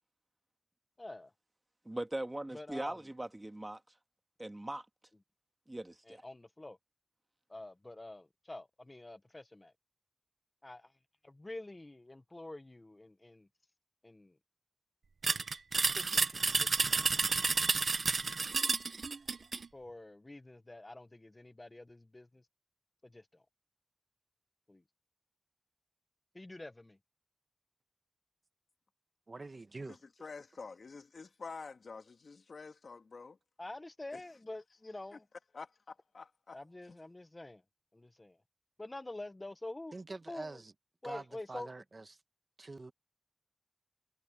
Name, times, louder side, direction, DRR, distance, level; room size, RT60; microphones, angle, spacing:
voice 1, 1.0-1.3 2.5-3.0 6.1-6.8 7.5-9.7 10.6-10.9 11.2-13.5 14.0-14.3 15.2-15.5 15.9-17.4 19.7-22.5 23.0-23.4 24.7-24.8 26.3-27.0 33.6-35.2 36.5-37.6 37.9-38.4 38.8-39.9 40.3-40.6 41.0-41.7, left 2 dB, 30° left, 0.7 m, -47 dB
voice 2, 1.8-3.8 4.4-4.8 5.7-6.2, right 1 dB, 20° right, 1.7 m, -40 dB
sound 1, 15.2-19.7, right 4 dB, 80° right, 0.7 m, -30 dB
voice 3, 29.3-30.0 39.9-40.7 41.0-42.2 42.6-42.9, right 3 dB, 50° right, 1.1 m, -46 dB
voice 4, 29.9-33.4 34.1-34.2 35.1-35.2 35.5-36.6 36.9-37.0, left 4 dB, 85° left, 2.2 m, -48 dB
wide cardioid pair, 90°, 0 cm